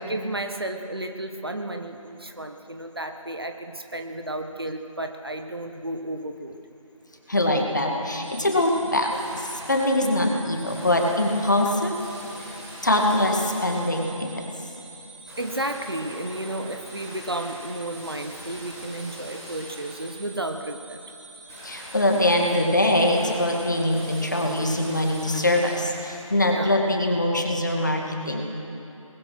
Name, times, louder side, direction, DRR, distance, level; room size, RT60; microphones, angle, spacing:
voice 1, 0.0-6.6 15.4-21.0 26.5-26.7, right 1 dB, 45° right, 6 dB, 1.3 m, -32 dB
voice 2, 7.3-12.0 12.8-14.5 21.6-28.5, left 1 dB, 35° left, 1 dB, 2.1 m, -23 dB
sound 1, 8.2-25.7, right 3 dB, 20° right, 6.9 m, -46 dB
sound 2, 8.9-10.2 10.6-14.2 15.2-20.2 21.5-26.4 26.9-27.0, equal, 10° left, 3.5 m, -43 dB
26.0 x 20.5 x 6.2 m, 2.8 s
figure-of-eight pair, 170°, 18 cm